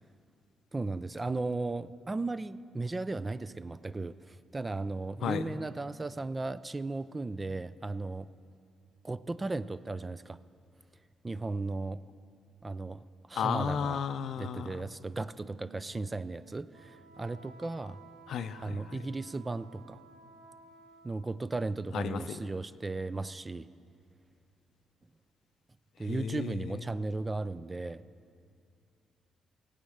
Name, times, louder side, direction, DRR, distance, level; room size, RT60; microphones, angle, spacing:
voice 1, 0.7-8.3 9.0-10.4 11.2-12.0 12.6-14.0 14.4-18.0 18.6-20.0 21.0-23.7 26.0-28.0, right 3 dB, 20° right, 15 dB, 0.4 m, -36 dB
voice 2, 13.4-14.7 18.3-19.0 21.9-22.4 26.1-26.6, left 7 dB, 70° left, 11 dB, 0.5 m, -33 dB
Wind instrument woodwind instrument, 15.3-21.5, right 4 dB, 80° right, 0.9 m, -56 dB
17.5 x 8.2 x 6.4 m, 2.3 s
cardioid pair, 90°, 0 cm